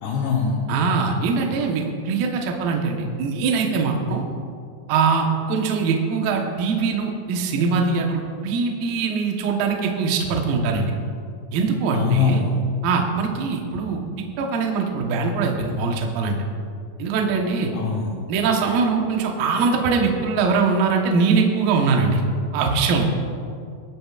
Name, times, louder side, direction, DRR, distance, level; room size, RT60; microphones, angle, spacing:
voice 1, 0.0-0.6 11.9-12.5 17.7-18.2, left 5 dB, 75° left, -2 dB, 2.7 m, -22 dB
voice 2, 0.7-4.2 4.9-10.9 11.5-12.4 12.8-14.0 14.4-16.4 17.0-17.7 18.3-22.2 22.5-23.1, right 4 dB, 80° right, 1 dB, 2.0 m, -22 dB
26.0 x 8.7 x 2.4 m, 2.4 s
omnidirectional pair, 5.9 m